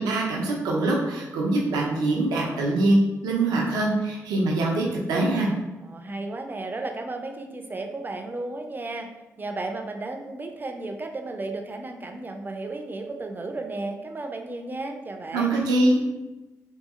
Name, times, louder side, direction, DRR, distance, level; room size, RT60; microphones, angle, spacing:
voice 1, 0.0-5.5 15.3-16.1, right 2 dB, 90° right, -2 dB, 0.5 m, -23 dB
voice 2, 5.8-9.1 9.4-15.5, right 2 dB, 30° right, 4 dB, 0.4 m, -34 dB
2.7 x 2.6 x 2.4 m, 1.1 s
supercardioid pair, 40°, 7 cm